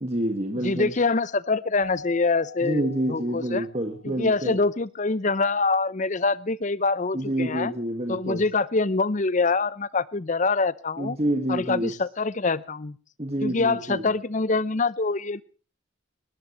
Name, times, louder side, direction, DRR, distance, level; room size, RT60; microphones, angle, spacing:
voice 1, 0.0-0.9 2.6-4.6 7.1-8.5 11.0-11.9 13.2-14.1, right 1 dB, 30° right, 1.7 m, -28 dB
voice 2, 0.5-3.7 4.0-7.7 8.1-11.2 11.5-13.0 13.4-15.4, left 3 dB, 35° left, 0.7 m, -25 dB
Keyboard (musical), 1.8-4.1, left 3 dB, 65° right, 5.2 m, -43 dB
21.0 x 19.5 x 3.1 m
head